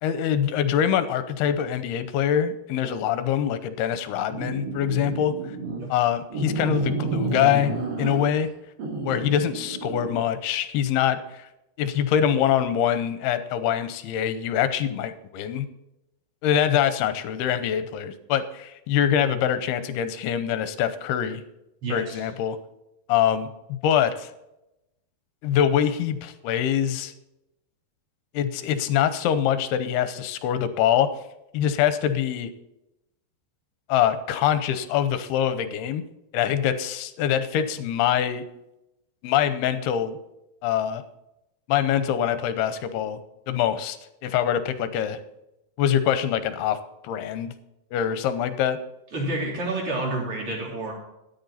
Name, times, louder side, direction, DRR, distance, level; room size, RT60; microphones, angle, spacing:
voice 1, 0.0-5.6 5.9-7.7 8.0-8.5 9.0-11.5 11.8-15.7 16.4-21.4 21.9-22.6 23.1-24.3 25.4-27.1 28.3-31.1 31.5-32.5 33.9-36.0 36.3-38.4 39.2-40.2 40.6-41.0 41.7-43.2 43.5-44.0 44.2-45.2 45.8-46.8 47.0-47.5 47.9-48.8, left 9 dB, 75° left, 11 dB, 2.6 m, -24 dB
sound 1, 4.3-5.8 6.3-8.4 8.8-10.2, right 3 dB, 80° right, 5.2 m, -30 dB
voice 2, 21.8-22.2 49.1-50.9, right 2 dB, 35° right, -2 dB, 3.8 m, -29 dB
13.0 x 10.0 x 4.1 m, 0.89 s
omnidirectional pair, 4.9 m